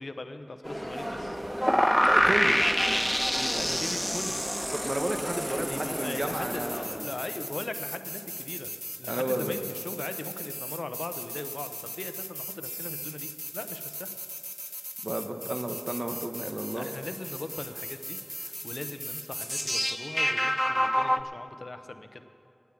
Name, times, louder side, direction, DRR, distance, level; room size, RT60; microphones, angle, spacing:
voice 1, 0.0-1.4 3.4-4.4 5.4-8.7 9.0-14.1 16.7-22.2, left 2 dB, 70° left, 9 dB, 0.7 m, -40 dB
sound 1, 0.6-6.9, equal, 30° right, 2.6 m, -36 dB
sound 2, 1.6-21.2, equal, 5° left, 0.4 m, -31 dB
voice 2, 2.0-2.6 4.7-7.0 9.1-9.6 15.0-16.9, right 1 dB, 50° right, 5 dB, 1.2 m, -32 dB
10.0 x 9.5 x 8.9 m, 2.8 s
wide cardioid pair, 45°, 0 cm